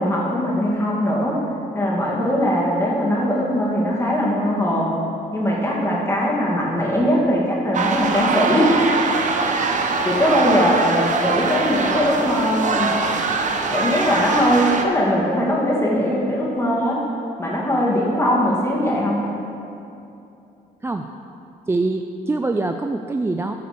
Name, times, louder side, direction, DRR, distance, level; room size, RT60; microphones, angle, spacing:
voice 1, 0.0-1.4 1.7-4.9 5.3-8.8 10.0-13.0 13.7-17.0 17.4-19.2, equal, 15° left, -5 dB, 2.4 m, -20 dB
sound 1, 7.7-14.8, right 4 dB, 45° right, 0.9 m, -22 dB
voice 2, 21.7-23.6, right 2 dB, 15° right, 5 dB, 0.4 m, -24 dB
9.2 x 5.0 x 6.7 m, 2.7 s
supercardioid pair, 70°, 17 cm